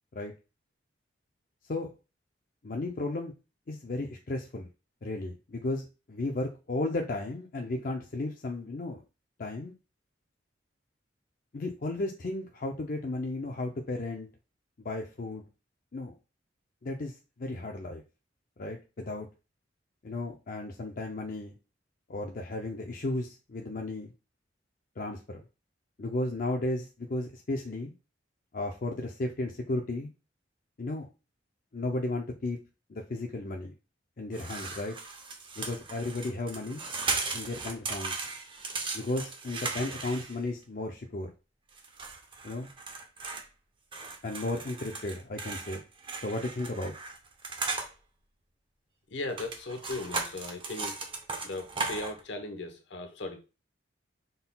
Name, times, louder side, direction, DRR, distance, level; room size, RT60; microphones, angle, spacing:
voice 1, 2.6-3.3 3.7-4.7 5.0-9.0 9.4-9.7 11.5-14.3 14.8-15.4 15.9-16.1 16.8-18.0 18.6-19.3 20.0-21.5 22.1-24.1 25.0-25.4 26.0-27.9 28.5-30.1 30.8-31.1 31.7-32.6 32.9-33.7 34.2-35.0 35.6-36.8 37.3-38.2 38.9-41.3 42.4-42.7 44.2-45.8 46.2-46.9, left 2 dB, 45° left, 2 dB, 0.5 m, -34 dB
sound 1, 34.3-40.6 41.8-43.4 43.9-47.9 49.3-52.2, right 4 dB, 25° right, 0.7 m, -37 dB
voice 2, 49.1-51.0 51.4-53.4, left 2 dB, 70° left, 5 dB, 0.9 m, -37 dB
5.4 x 3.9 x 2.2 m, 0.30 s
head